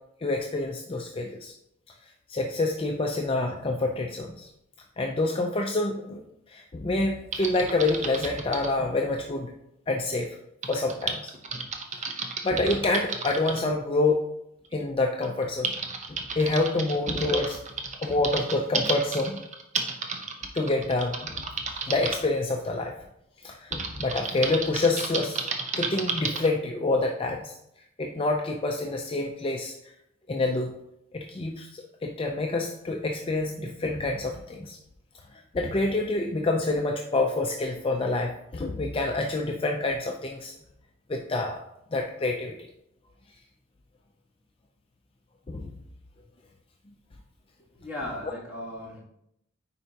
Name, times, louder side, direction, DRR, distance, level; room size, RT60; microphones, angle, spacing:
voice 1, 0.2-1.5 2.3-4.5 5.0-6.2 6.5-9.5 9.9-10.4 10.7-11.3 12.2-14.2 14.7-15.7 16.1-17.6 18.0-19.4 20.5-21.4 21.9-22.9 23.4-25.4 25.8-27.6 28.0-29.8 30.3-30.7 31.1-34.8 35.3-40.5 41.1-41.6 41.9-42.6 45.5-45.7, left 2 dB, 25° left, 2 dB, 0.5 m, -27 dB
Typing, 7.3-8.7 10.6-13.6 14.6-14.7 15.2-22.2 23.7-26.5, right 4 dB, 35° right, 0.8 m, -32 dB
voice 2, 47.7-49.0, left 1 dB, 5° right, -9 dB, 2.4 m, -36 dB
9.4 x 4.5 x 2.8 m, 0.79 s
head